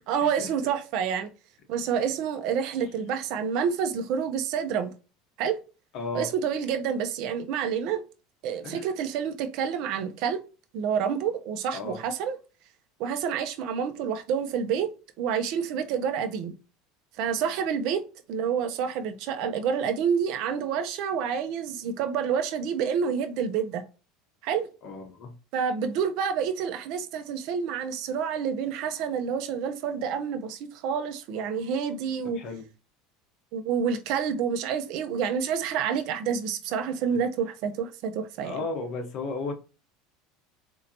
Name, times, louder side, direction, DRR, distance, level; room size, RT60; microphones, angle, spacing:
voice 1, 0.1-1.3 1.7-4.9 5.4-5.6 6.1-8.0 8.4-10.4 10.7-12.4 13.0-14.9 15.2-16.5 17.2-18.0 18.3-23.8 24.4-24.7 25.5-32.4 33.5-38.6, right 7 dB, 60° right, 0.6 m, -28 dB
voice 2, 5.9-6.3 8.6-8.9 11.7-12.0 24.8-25.3 32.3-32.6 38.4-39.5, left 3 dB, 45° left, 1.0 m, -34 dB
4.3 x 2.7 x 2.8 m
supercardioid pair, 140°, 0 cm